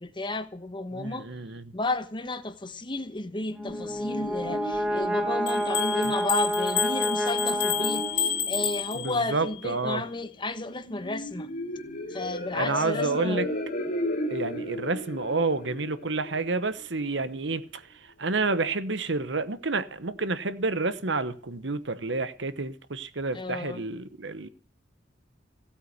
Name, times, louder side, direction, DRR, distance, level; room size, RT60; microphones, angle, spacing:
voice 1, 0.0-1.3 1.7-11.5 12.1-13.5 23.3-23.9, left 2 dB, 25° left, 1.2 m, -33 dB
voice 2, 0.9-1.7 8.9-10.0 12.5-13.5 14.3-17.8 18.2-24.5, right 3 dB, 75° right, 1.2 m, -29 dB
sound 1, 3.2-17.1, left 1 dB, 50° left, 2.5 m, -36 dB
Brass instrument, 3.5-8.6, equal, 10° right, 2.6 m, -29 dB
sound 2, 5.5-9.4, left 9 dB, 70° left, 3.8 m, -30 dB
16.5 x 8.7 x 8.4 m
head